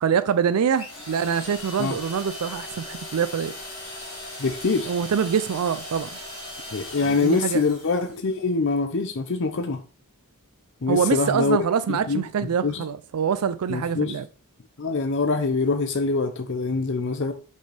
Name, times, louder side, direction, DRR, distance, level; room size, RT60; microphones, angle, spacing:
voice 1, 0.0-3.5 4.9-6.1 7.0-7.6 10.9-14.3, right 7 dB, 85° right, 0.4 m, -25 dB
sound 1, 0.7-8.3, left 1 dB, 25° left, 2.7 m, -38 dB
voice 2, 4.4-4.9 6.7-9.8 10.8-11.6 11.9-12.2 12.6-12.8 13.7-14.2 14.8-17.3, left 4 dB, 55° left, 0.6 m, -24 dB
6.4 x 5.5 x 3.3 m
head